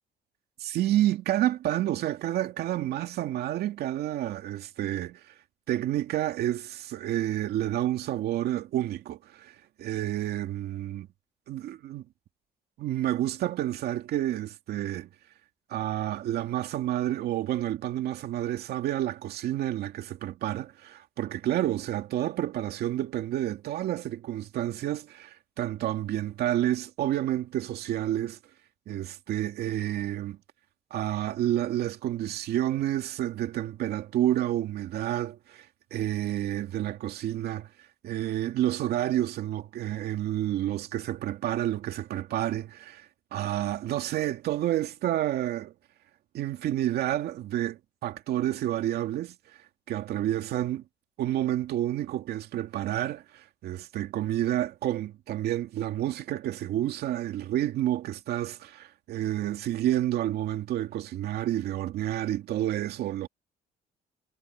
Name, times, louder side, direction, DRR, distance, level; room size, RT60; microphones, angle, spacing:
voice 1, 0.6-5.2 5.7-11.1 11.5-12.0 12.8-15.1 15.7-28.4 28.9-30.4 30.9-37.7 38.0-45.7 46.3-49.4 49.9-50.8 51.2-63.3, right 13 dB, 70° right, 2.4 m, -29 dB
cardioid pair, 110°, 17 cm